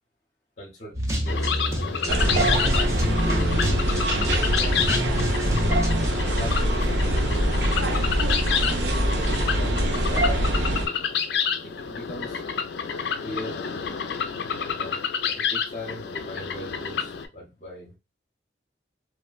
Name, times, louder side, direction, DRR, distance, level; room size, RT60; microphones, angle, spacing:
voice 1, 0.6-1.7 2.3-3.6 4.1-5.1 6.2-7.3 8.6-10.7 11.6-12.4 13.2-13.6 14.7-17.9, equal, 40° left, -3 dB, 0.7 m, -40 dB
sound 1, 0.9-6.1, equal, 15° right, 0.5 m, -29 dB
sound 2, 1.3-17.3, left 7 dB, 70° left, 0.4 m, -29 dB
sound 3, 2.1-10.9, right 1 dB, 80° right, 0.6 m, -23 dB
3.0 x 2.1 x 2.2 m, 0.25 s
head